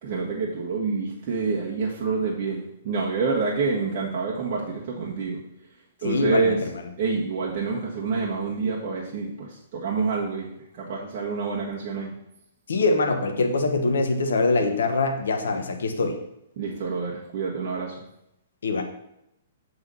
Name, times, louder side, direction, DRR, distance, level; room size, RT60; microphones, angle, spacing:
voice 1, 0.0-5.4 6.0-6.6 7.0-10.5 10.7-12.1 16.6-17.9, right 4 dB, 45° right, -5 dB, 1.7 m, -27 dB
voice 2, 6.0-6.8 12.7-16.2 18.6-18.8, left 3 dB, 70° left, 5 dB, 1.3 m, -23 dB
7.8 x 4.8 x 5.8 m, 0.81 s
figure-of-eight pair, 115°, 0 cm